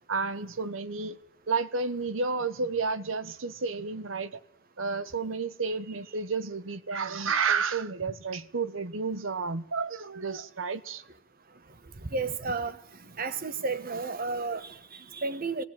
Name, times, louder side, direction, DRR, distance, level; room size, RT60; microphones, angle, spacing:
voice 1, 0.1-1.2 1.5-4.4 4.8-11.0, right 4 dB, 80° right, 1.0 m, -31 dB
voice 2, 12.0-12.8 13.2-15.6, right 4 dB, 45° right, 1.1 m, -32 dB
18.5 x 17.5 x 9.1 m
head